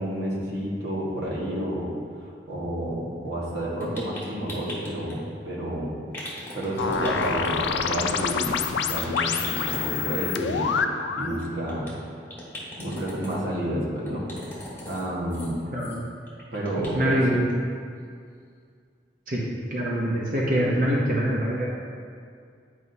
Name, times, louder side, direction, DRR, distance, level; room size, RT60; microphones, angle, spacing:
voice 1, 0.0-6.0 6.5-8.5 8.7-10.7 11.2-11.9 12.8-14.2 14.9-15.5 16.5-17.4, right 1 dB, 75° right, -6 dB, 1.6 m, -30 dB
sound 1, 3.8-5.1 6.1-7.5 7.8-8.0 8.3-8.4 8.7-8.8 9.0-10.4 11.3-11.9 12.3-13.4 14.0-15.0 15.3-15.5 15.8-16.0 16.2-17.1 17.5-17.6 17.9-18.0, left 1 dB, 15° left, 1.5 m, -39 dB
sound 2, 6.8-11.4, left 6 dB, 80° left, 0.4 m, -27 dB
voice 2, 15.7-16.0 16.9-17.4 19.3-19.4 19.7-21.7, equal, 50° right, -4 dB, 0.9 m, -24 dB
9.7 x 4.9 x 2.8 m, 2.2 s
head